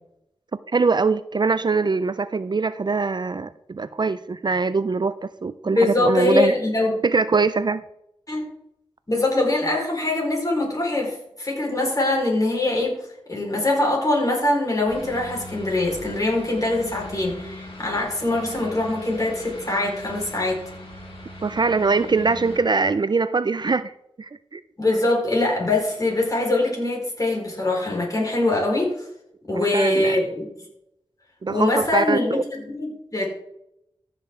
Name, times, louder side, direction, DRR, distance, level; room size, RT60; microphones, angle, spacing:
voice 1, 0.7-6.5 7.0-7.8 21.4-23.9 24.2-24.6 29.5-30.2 31.4-32.4, right 4 dB, 45° right, 14 dB, 0.4 m, -22 dB
voice 2, 5.8-6.9 8.3-8.4 9.1-13.0 13.3-20.6 24.8-28.9 29.5-30.4 31.5-33.3, left 2 dB, 35° left, -1 dB, 4.5 m, -23 dB
sound 1, 14.9-22.6, left 1 dB, 60° left, 4.3 m, -40 dB
14.5 x 6.8 x 3.7 m, 0.78 s
wide cardioid pair, 55°, 10 cm